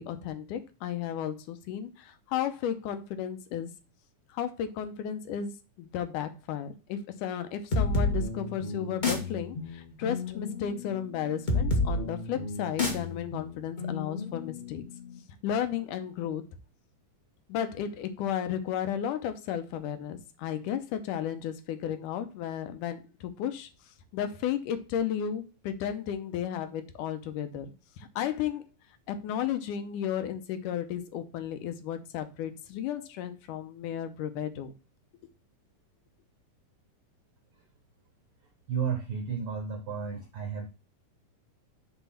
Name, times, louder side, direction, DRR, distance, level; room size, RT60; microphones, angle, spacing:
voice 1, 0.0-3.7 4.3-5.5 5.8-14.8 15.4-16.4 17.5-23.7 24.1-27.7 28.0-28.6 29.1-34.7, left 9 dB, 80° left, 9 dB, 2.3 m, -33 dB
sound 1, 7.7-15.1, left 2 dB, 60° left, 0.4 m, -31 dB
voice 2, 38.7-40.7, right 6 dB, 75° right, 6 dB, 1.3 m, -32 dB
6.8 x 4.0 x 5.6 m, 0.31 s
omnidirectional pair, 3.8 m